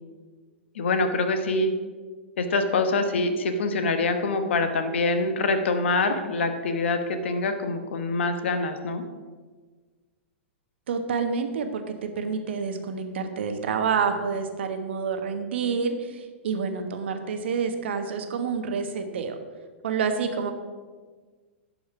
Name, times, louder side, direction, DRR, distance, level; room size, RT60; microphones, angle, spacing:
voice 1, 0.7-1.7 2.4-9.0, left 3 dB, 70° left, 8 dB, 1.1 m, -25 dB
voice 2, 10.9-19.4 19.8-20.5, right 5 dB, 65° right, 7 dB, 1.2 m, -28 dB
11.0 x 5.1 x 6.0 m, 1.4 s
figure-of-eight pair, 100°, 7 cm